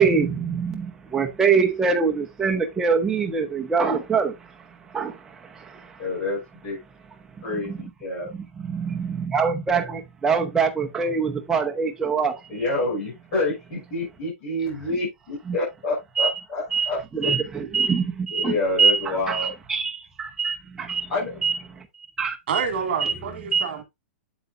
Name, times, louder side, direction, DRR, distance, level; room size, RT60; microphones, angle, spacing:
voice 1, 0.0-4.4 4.9-6.0 7.7-7.8 8.3-12.4 15.5-15.6 16.2-16.4 16.7-21.1 21.4-21.6 22.2-22.4 23.0-23.1 23.5-23.7, right 5 dB, 5° right, 0.8 m, -24 dB
voice 2, 6.0-6.4 6.6-6.8 7.4-8.3 12.5-17.0 17.2-17.4 18.3-19.5 21.1-21.4, left 2 dB, 25° left, 6.2 m, -28 dB
voice 3, 22.5-23.8, right 6 dB, 45° right, 2.9 m, -27 dB
8.2 x 8.1 x 2.5 m
hypercardioid pair, 175°, 7 cm